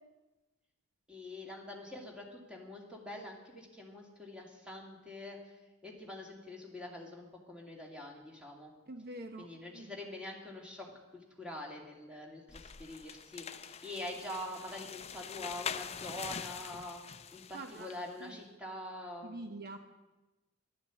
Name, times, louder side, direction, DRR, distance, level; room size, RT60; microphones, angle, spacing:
voice 1, 1.1-5.6 5.8-8.8 9.4-10.9 11.1-19.5, left 1 dB, 5° right, -1 dB, 2.5 m, -45 dB
voice 2, 8.9-9.5 9.7-9.9 17.5-17.9 18.2-18.4 19.2-19.8, right 2 dB, 50° right, 6 dB, 0.9 m, -45 dB
sound 1, 12.5-18.1, left 7 dB, 30° left, 0.5 m, -44 dB
12.0 x 11.5 x 8.2 m, 1.1 s
head